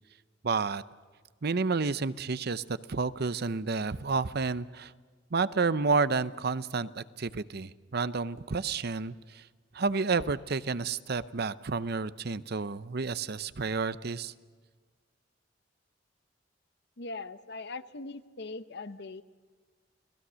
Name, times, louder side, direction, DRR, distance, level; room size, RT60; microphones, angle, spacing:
voice 1, 0.4-0.8 1.4-4.9 5.3-9.4 9.7-14.3, right 4 dB, 60° right, 15 dB, 0.7 m, -30 dB
voice 2, 17.0-19.2, left 3 dB, 65° left, 12 dB, 1.0 m, -40 dB
29.5 x 19.0 x 6.3 m, 1.5 s
head